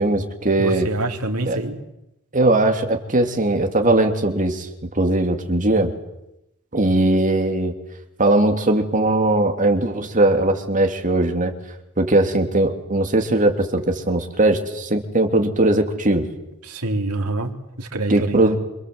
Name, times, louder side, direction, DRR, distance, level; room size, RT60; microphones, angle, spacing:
voice 1, 0.0-0.9 1.5-1.6 2.3-4.7 4.9-5.9 6.7-7.7 8.2-11.5 12.0-16.3 18.1-18.6, right 2 dB, 35° right, 5 dB, 3.1 m, -19 dB
voice 2, 0.6-1.8 16.6-18.5, right 2 dB, 85° right, 3 dB, 3.5 m, -26 dB
27.0 x 26.0 x 8.0 m, 0.86 s
head